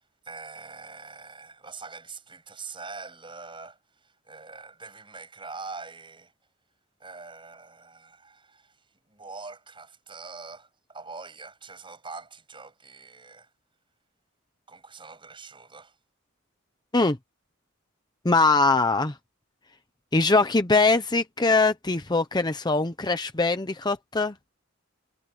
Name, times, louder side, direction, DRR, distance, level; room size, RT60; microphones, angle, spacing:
voice 1, 0.2-6.3 7.0-8.8 9.1-13.5 14.7-16.0, right 4 dB, 25° right, 7.5 m, -43 dB
voice 2, 18.2-19.2 20.1-24.3, left 3 dB, 20° left, 0.8 m, -22 dB
head